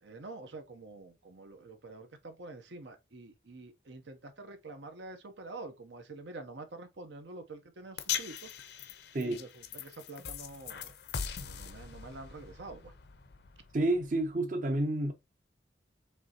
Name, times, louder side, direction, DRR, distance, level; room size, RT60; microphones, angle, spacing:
voice 1, 0.0-8.8 9.2-10.9 11.4-12.9, right 2 dB, 85° right, 0.8 m, -47 dB
sound 1, 8.0-14.3, left 8 dB, 65° left, 0.6 m, -41 dB
voice 2, 13.7-15.1, right 1 dB, 45° right, 0.6 m, -29 dB
5.2 x 3.2 x 2.8 m
head